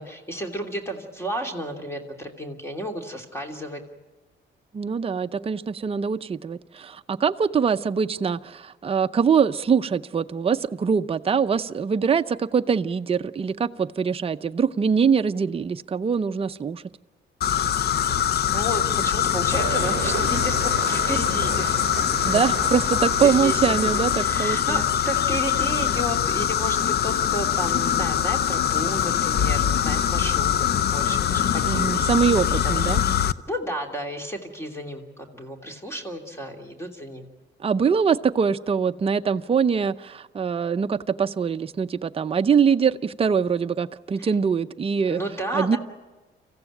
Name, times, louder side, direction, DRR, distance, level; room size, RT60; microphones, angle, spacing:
voice 1, 0.0-3.8 18.5-21.7 22.2-22.7 23.2-31.9 32.6-32.7 33.5-37.3 44.2-44.3 45.1-45.8, equal, 15° left, 3 dB, 2.9 m, -32 dB
voice 2, 4.7-16.8 22.2-24.8 31.6-33.0 37.6-45.2 45.5-45.8, right 6 dB, 30° right, 8 dB, 0.6 m, -23 dB
sound 1, 17.4-33.3, left 9 dB, 55° left, 0.6 m, -23 dB
sound 2, 19.5-24.6, right 10 dB, 65° right, 0.8 m, -34 dB
26.0 x 15.0 x 9.1 m, 1.2 s
cardioid pair, 90°, 20 cm